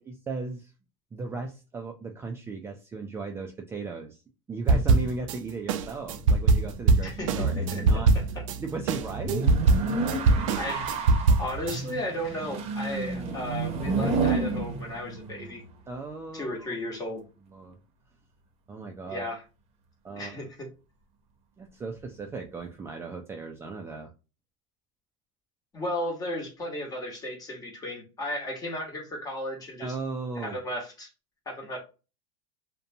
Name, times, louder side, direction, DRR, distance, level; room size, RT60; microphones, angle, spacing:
voice 1, 0.1-0.7 1.1-4.2 4.5-8.1 8.6-9.5 15.9-16.7 17.5-17.8 18.7-19.3 20.0-20.5 21.6-24.1 29.8-30.6, right 4 dB, 15° right, 3 dB, 0.4 m, -36 dB
sound 1, 4.7-5.4 5.7-8.6 8.9-11.8, right 3 dB, 80° right, 0.4 m, -22 dB
sound 2, 6.1-15.7, right 3 dB, 40° right, 0.7 m, -31 dB
voice 2, 7.0-7.4 7.7-7.8 10.6-10.9 11.4-15.6 16.3-17.2 19.1-19.4 20.2-20.6 25.7-29.9 30.4-31.1 31.5-31.8, left 1 dB, 20° left, 1 dB, 1.1 m, -34 dB
2.5 x 2.2 x 2.7 m, 0.31 s
supercardioid pair, 115°, 17 cm